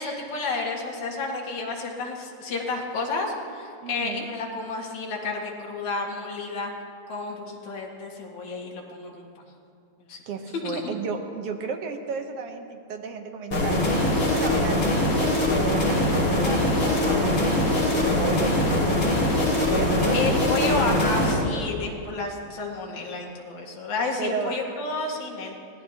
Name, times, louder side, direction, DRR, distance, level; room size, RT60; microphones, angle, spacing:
voice 1, 0.0-6.7 7.1-9.4 10.1-10.2 10.6-10.8 20.1-25.6, left 3 dB, 75° left, -1 dB, 3.2 m, -31 dB
voice 2, 3.8-4.3 10.3-13.9 14.3-18.9 19.5-21.2 24.2-24.6, right 5 dB, 65° right, 4 dB, 1.8 m, -33 dB
sound 1, 13.5-21.3, left 1 dB, 50° left, 4.1 m, -22 dB
24.0 x 17.5 x 2.9 m, 2.4 s
omnidirectional pair, 3.4 m